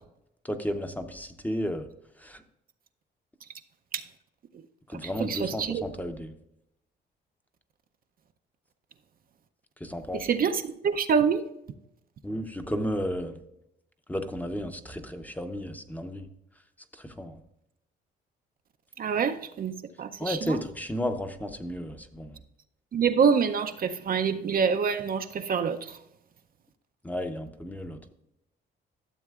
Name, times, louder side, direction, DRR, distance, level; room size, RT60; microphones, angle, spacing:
voice 1, 0.4-1.9 2.2-2.4 4.9-6.3 9.8-10.3 12.2-13.4 14.1-16.3 17.0-17.4 20.2-22.4 27.0-28.0, equal, 10° left, 7 dB, 0.8 m, -33 dB
voice 2, 5.0-5.8 10.1-11.4 19.0-20.6 22.9-26.0, right 6 dB, 50° right, 8 dB, 0.5 m, -26 dB
13.0 x 7.1 x 2.4 m, 0.81 s
cardioid pair, 90°, 20 cm